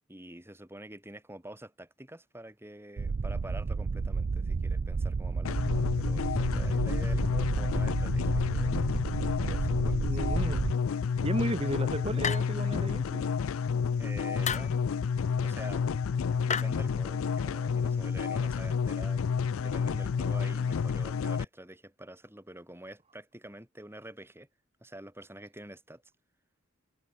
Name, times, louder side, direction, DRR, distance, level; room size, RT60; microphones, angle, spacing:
voice 1, 0.1-8.9 9.4-10.2 14.0-14.7 15.4-15.8 16.4-19.2 19.6-24.5 24.8-26.0, right 1 dB, 10° right, 5.6 m, -47 dB
sound 1, 3.0-10.7, right 4 dB, 45° right, 0.4 m, -31 dB
sound 2, 5.4-21.4, left 6 dB, 85° left, 0.4 m, -30 dB
voice 2, 10.0-10.6 11.2-13.3, right 1 dB, 30° right, 1.6 m, -34 dB
sound 3, 12.2-12.8 14.4-14.8 16.5-16.6, left 7 dB, 35° left, 2.0 m, -32 dB
head